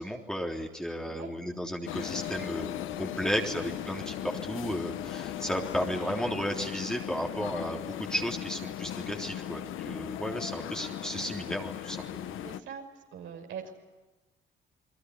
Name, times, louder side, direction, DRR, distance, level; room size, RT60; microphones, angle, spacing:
voice 1, 0.0-2.7 3.0-12.4, equal, 5° left, 1 dB, 3.5 m, -34 dB
sound 1, 1.9-12.6, left 11 dB, 85° left, 1.3 m, -37 dB
voice 2, 12.4-13.7, right 7 dB, 75° right, 3 dB, 6.0 m, -42 dB
29.0 x 21.0 x 9.7 m, 1.1 s
cardioid pair, 90°, 20 cm